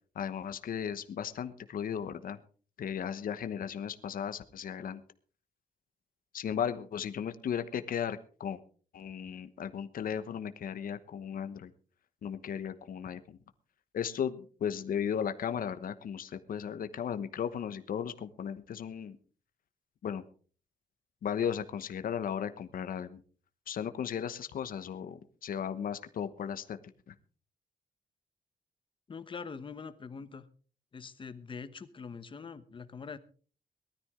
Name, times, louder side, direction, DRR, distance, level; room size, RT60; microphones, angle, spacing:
voice 1, 0.1-2.4 2.8-5.0 6.3-8.6 8.9-11.7 12.2-13.4 13.9-19.2 20.0-20.2 21.2-23.2 23.7-26.8 27.1-27.2, left 8 dB, 70° left, 10 dB, 1.1 m, -36 dB
voice 2, 29.1-30.4 30.9-33.2, left 5 dB, 35° left, 12 dB, 1.1 m, -43 dB
19.0 x 13.0 x 3.7 m, 0.41 s
wide cardioid pair, 165°, 15 cm